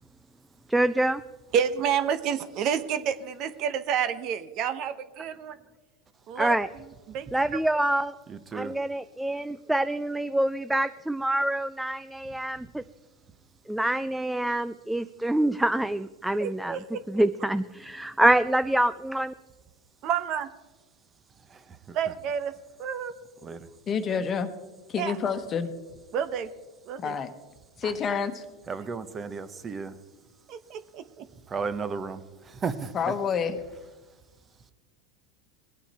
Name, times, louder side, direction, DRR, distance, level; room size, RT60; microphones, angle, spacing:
voice 1, 0.7-1.2 6.4-6.7 7.3-8.1 8.5-12.8 13.7-16.8 17.1-19.3, right 1 dB, 5° right, 13 dB, 0.4 m, -26 dB
voice 2, 1.5-5.6 6.3-6.5 7.1-7.5 16.4-17.0 20.0-20.5 21.9-22.5 22.8-23.1 25.0-25.2 26.1-26.5 26.9-27.1 27.8-27.9 30.5-31.3, right 8 dB, 50° right, 12 dB, 0.9 m, -29 dB
voice 3, 8.3-8.8 21.4-22.0 23.4-23.7 28.7-30.0 31.5-33.1, right 5 dB, 25° right, 12 dB, 1.0 m, -34 dB
voice 4, 23.9-24.5 24.9-25.7 27.0-27.3 27.8-28.4 32.9-33.6, left 6 dB, 30° left, 9 dB, 1.2 m, -28 dB
20.5 x 8.9 x 4.3 m, 1.2 s
supercardioid pair, 110°, 0 cm